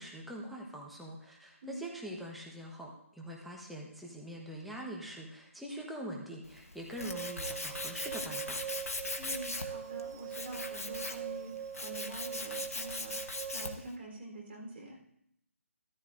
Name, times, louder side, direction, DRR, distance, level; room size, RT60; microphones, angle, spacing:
voice 1, 0.0-8.6, right 1 dB, ahead, -3 dB, 1.3 m, -43 dB
Tools, 6.4-13.9, left 2 dB, 80° left, 1.2 m, -40 dB
sound 1, 7.0-13.7, right 9 dB, 25° right, 0.4 m, -42 dB
voice 2, 9.2-15.0, right 1 dB, 50° right, 0 dB, 4.0 m, -46 dB
13.5 x 13.0 x 2.6 m, 0.74 s
figure-of-eight pair, 150°, 8 cm